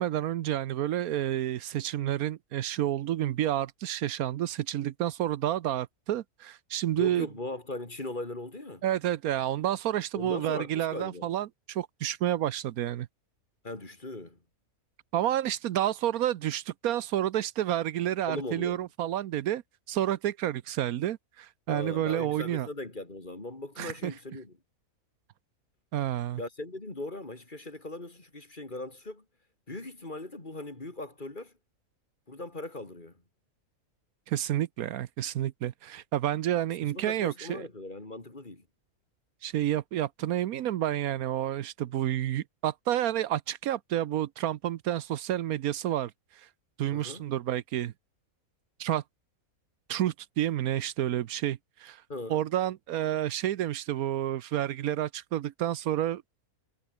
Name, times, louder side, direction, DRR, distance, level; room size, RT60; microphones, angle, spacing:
voice 1, 0.0-7.3 8.8-13.1 15.1-19.6 19.9-22.7 23.8-24.1 25.9-26.4 34.3-37.7 39.4-46.1 46.8-47.9 48.8-49.0 49.9-52.0 52.3-56.2, right 12 dB, 80° right, 1.2 m, -30 dB
voice 2, 7.0-8.8 10.1-11.3 13.6-14.4 18.3-18.8 21.7-24.6 26.4-29.2 29.7-31.5 32.3-33.2 36.8-38.6 46.9-47.2 52.1-52.4, left 2 dB, 30° left, 3.3 m, -39 dB
omnidirectional pair, 1.5 m